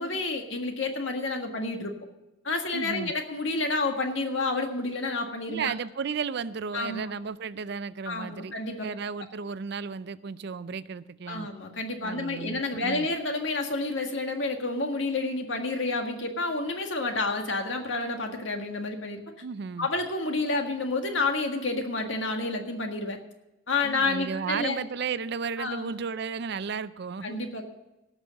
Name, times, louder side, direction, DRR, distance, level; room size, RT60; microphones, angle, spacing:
voice 1, 0.0-1.9 2.4-5.7 6.7-7.0 8.0-8.9 11.3-19.2 19.8-23.2 23.7-24.8 25.6-25.9 27.2-27.6, left 3 dB, 75° left, 4 dB, 1.7 m, -29 dB
voice 2, 2.7-3.1 5.5-8.5 8.8-11.5 12.0-13.1 19.4-19.9 23.8-27.4, right 5 dB, 60° right, 16 dB, 0.5 m, -34 dB
17.5 x 6.3 x 6.4 m, 0.98 s
head